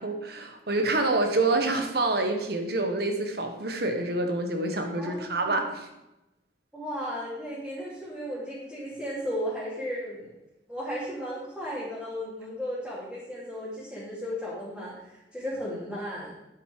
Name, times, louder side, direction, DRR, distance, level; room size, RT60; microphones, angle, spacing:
voice 1, 0.0-5.9, right 2 dB, 60° right, 5 dB, 1.4 m, -27 dB
voice 2, 5.0-5.7 6.7-10.3 10.7-16.3, equal, 5° right, -10 dB, 2.9 m, -35 dB
9.4 x 8.1 x 4.7 m, 0.93 s
head